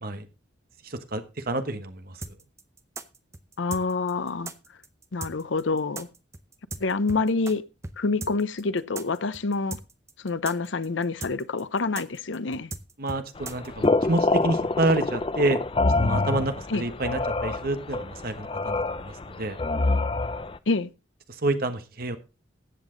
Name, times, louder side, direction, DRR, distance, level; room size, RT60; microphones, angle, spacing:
voice 1, 0.8-2.2 13.0-15.6 16.0-19.6 21.3-22.2, right 2 dB, 50° right, 1.2 m, -28 dB
sound 1, 2.2-7.5 7.8-14.0, right 3 dB, 15° right, 0.7 m, -38 dB
voice 2, 3.6-4.5 5.1-6.1 6.8-7.6 8.0-9.8 10.2-12.7 16.7-16.8 20.7-20.9, left 3 dB, 85° left, 0.7 m, -27 dB
sound 2, 13.4-20.6, left 3 dB, 30° left, 0.5 m, -26 dB
14.5 x 8.2 x 3.8 m
head